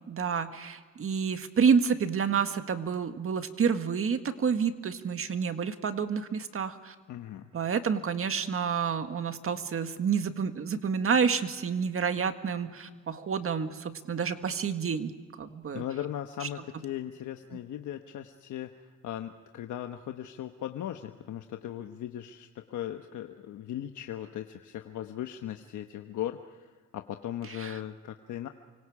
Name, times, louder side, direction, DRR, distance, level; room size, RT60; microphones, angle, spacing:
voice 1, 0.1-7.0 7.5-15.1 15.4-15.8 16.4-16.5 27.5-27.8, right 6 dB, 45° right, 8 dB, 1.8 m, -29 dB
voice 2, 7.1-7.5 15.7-18.7 19.0-26.7 26.9-28.5, left 11 dB, 75° left, 5 dB, 1.2 m, -38 dB
29.0 x 25.0 x 4.9 m, 1.5 s
cardioid pair, 90°, 30 cm